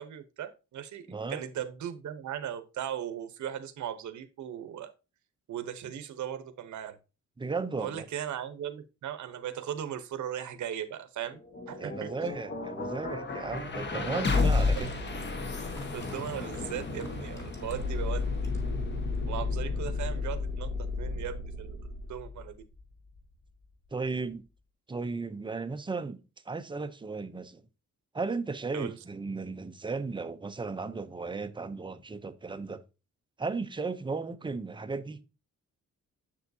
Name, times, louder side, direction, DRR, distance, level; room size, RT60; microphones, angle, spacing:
voice 1, 0.0-4.9 5.5-7.0 7.8-12.1 14.7-15.0 15.9-18.4 19.3-22.6 28.7-29.0, right 10 dB, 70° right, 0.9 m, -38 dB
voice 2, 1.1-1.4 7.4-8.0 11.8-14.9 23.9-24.4 24.9-26.2 26.5-27.6 28.1-32.8 33.4-35.2, right 4 dB, 15° right, 0.6 m, -35 dB
sound 1, 11.3-23.3, left 3 dB, 35° left, 1.3 m, -34 dB
sound 2, 13.6-13.7 14.6-18.0 18.3-18.8 19.2-19.3, equal, 10° left, 1.9 m, -52 dB
sound 3, 17.6-22.5, left 4 dB, 55° left, 1.6 m, -33 dB
7.2 x 7.0 x 2.7 m
wide cardioid pair, 150°, 30 cm